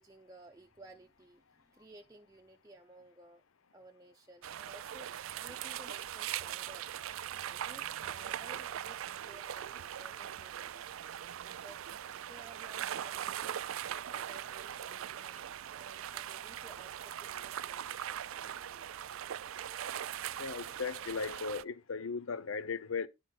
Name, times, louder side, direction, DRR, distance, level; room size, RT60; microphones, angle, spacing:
voice 1, 0.0-3.4 3.7-6.9 7.2-9.0 9.2-13.6 13.9-15.4 15.7-19.3, right 1 dB, 15° right, 0.7 m, -57 dB
sound 1, 4.4-21.6, right 10 dB, 85° right, 0.4 m, -41 dB
voice 2, 20.4-23.1, left 5 dB, 85° left, 0.7 m, -37 dB
11.0 x 4.2 x 5.7 m
head